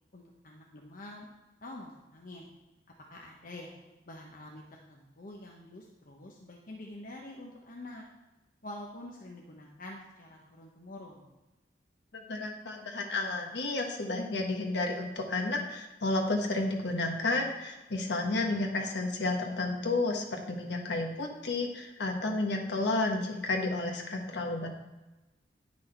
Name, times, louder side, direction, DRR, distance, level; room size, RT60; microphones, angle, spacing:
voice 1, 0.1-1.3 1.6-2.5 3.1-3.7 4.1-8.0 8.6-11.3, left 1 dB, 50° left, -1 dB, 1.0 m, -46 dB
voice 2, 12.1-24.7, left 2 dB, 70° left, 1 dB, 1.4 m, -31 dB
9.8 x 6.2 x 4.4 m, 1.1 s
head